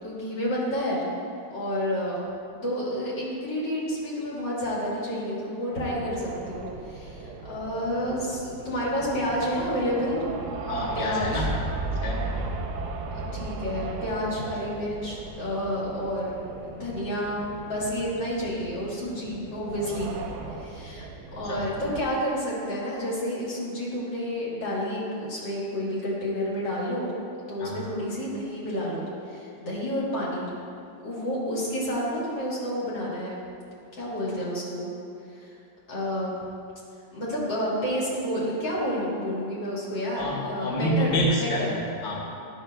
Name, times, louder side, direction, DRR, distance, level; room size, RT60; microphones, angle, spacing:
voice 1, 0.0-1.0 1.5-2.2 2.5-10.2 11.0-11.5 13.1-16.4 16.7-20.1 20.6-21.1 21.3-27.1 27.5-30.5 31.0-33.4 33.9-34.9 35.3-35.6 35.9-36.4 37.1-41.7, equal, 85° left, -6 dB, 2.4 m, -30 dB
sound 1, 5.7-22.0, right 5 dB, 75° right, 1.1 m, -38 dB
voice 2, 10.7-11.6 11.9-12.2 21.3-21.7 27.6-27.8 40.1-42.2, equal, 45° left, -4 dB, 1.3 m, -28 dB
sound 2, 11.2-15.5, right 1 dB, 5° right, 0.8 m, -33 dB
11.0 x 6.0 x 2.2 m, 2.6 s
omnidirectional pair, 1.9 m